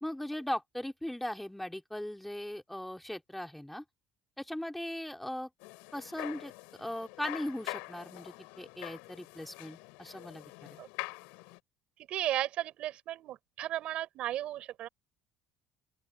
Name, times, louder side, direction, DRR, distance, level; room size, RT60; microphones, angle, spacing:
voice 1, 0.0-3.8 4.4-5.5 5.9-6.5 6.8-10.8, left 1 dB, 5° left, 3.1 m, -39 dB
sound 1, 5.6-11.6, left 29 dB, 90° left, 6.7 m, -45 dB
voice 2, 12.1-14.9, right 13 dB, 65° right, 5.4 m, -35 dB
open air
cardioid pair, 100°, 2 cm